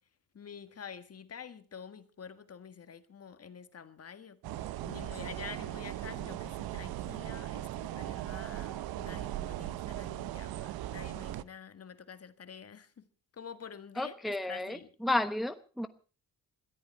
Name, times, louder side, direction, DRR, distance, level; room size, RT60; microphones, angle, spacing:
voice 1, 0.3-13.1 13.3-14.9, left 7 dB, 45° left, 1.7 m, -48 dB
sound 1, 4.4-11.4, right 14 dB, 80° right, 0.7 m, -38 dB
voice 2, 14.0-15.9, left 2 dB, ahead, 1.0 m, -32 dB
21.5 x 14.0 x 4.5 m
cardioid pair, 90°, 36 cm